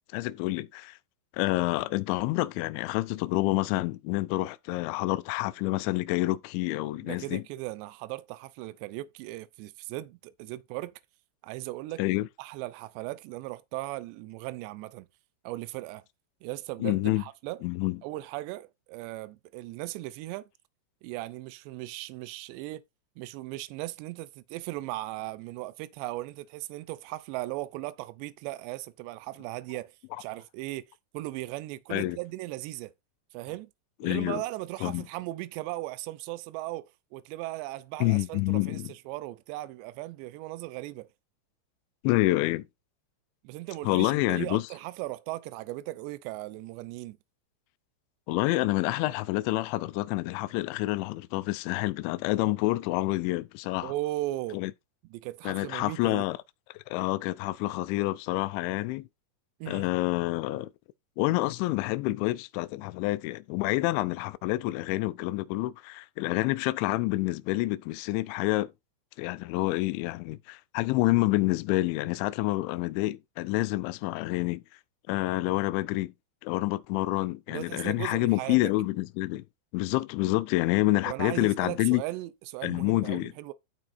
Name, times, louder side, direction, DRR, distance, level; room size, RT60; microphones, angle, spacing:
voice 1, 0.1-1.0 1.3-7.4 12.0-12.3 16.8-17.2 17.6-18.0 31.9-32.2 34.0-34.4 34.8-35.0 38.0-38.9 42.0-42.7 43.8-44.7 48.3-53.9 54.5-54.7 55.5-56.4 56.9-59.1 59.7-60.7 61.2-68.7 69.2-74.6 75.1-76.1 76.4-79.4 79.7-82.0 82.6-83.3, left 19 dB, 85° left, 2.7 m, -28 dB
voice 2, 7.0-10.9 11.4-15.1 15.4-16.0 16.4-17.6 18.0-20.5 21.0-22.8 23.2-29.9 30.2-30.8 31.1-32.9 33.3-33.7 34.0-41.1 43.4-47.2 53.8-54.6 55.1-56.2 59.6-59.9 77.5-78.6 81.1-83.5, right 17 dB, 85° right, 2.5 m, -37 dB
12.5 x 4.5 x 4.2 m
omnidirectional pair, 5.8 m